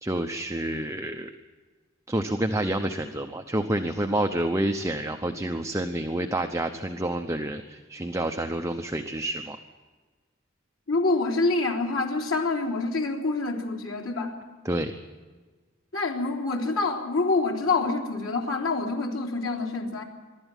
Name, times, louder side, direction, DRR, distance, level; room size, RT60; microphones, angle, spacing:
voice 1, 0.0-1.3 2.1-9.6 14.6-14.9, right 1 dB, 15° right, 5 dB, 0.9 m, -28 dB
voice 2, 10.9-14.4 15.9-20.0, left 3 dB, 75° left, 0 dB, 3.6 m, -26 dB
23.5 x 12.5 x 9.2 m, 1.4 s
head